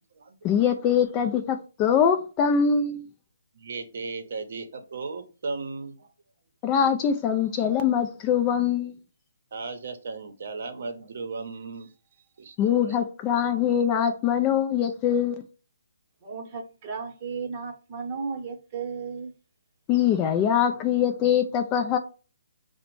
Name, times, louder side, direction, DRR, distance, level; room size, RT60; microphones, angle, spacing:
voice 1, 0.4-3.1 6.6-8.9 12.6-15.3 19.9-22.0, left 8 dB, 20° left, 0.3 m, -23 dB
voice 2, 3.6-6.1 9.5-11.9 12.4-13.0, right 4 dB, 55° right, 0.7 m, -36 dB
voice 3, 16.2-19.3, right 5 dB, 30° right, 0.8 m, -34 dB
4.9 x 2.1 x 3.0 m
hypercardioid pair, 155°, 0 cm